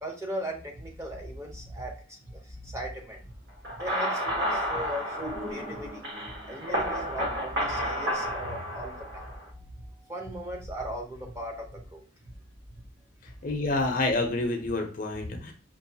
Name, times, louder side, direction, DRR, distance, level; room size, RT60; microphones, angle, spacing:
voice 1, 0.0-3.2 3.7-6.1 6.4-9.7 9.9-12.0, equal, 15° right, 1 dB, 0.6 m, -38 dB
sound 1, 3.6-9.4, equal, 60° right, 1.1 m, -31 dB
voice 2, 13.2-15.5, left 2 dB, 45° left, 4 dB, 0.6 m, -28 dB
5.3 x 2.5 x 2.7 m, 0.36 s
head